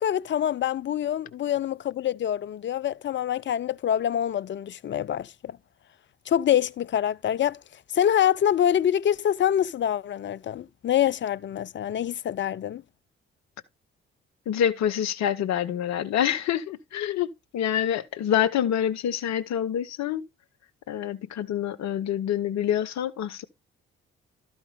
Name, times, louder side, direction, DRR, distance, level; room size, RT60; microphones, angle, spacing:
voice 1, 0.0-5.6 6.3-7.6 7.9-12.8, left 10 dB, 40° left, 0.4 m, -25 dB
voice 2, 14.5-20.2 20.9-23.4, left 10 dB, 60° left, 0.8 m, -26 dB
12.5 x 5.4 x 3.3 m
hypercardioid pair, 40°, 30 cm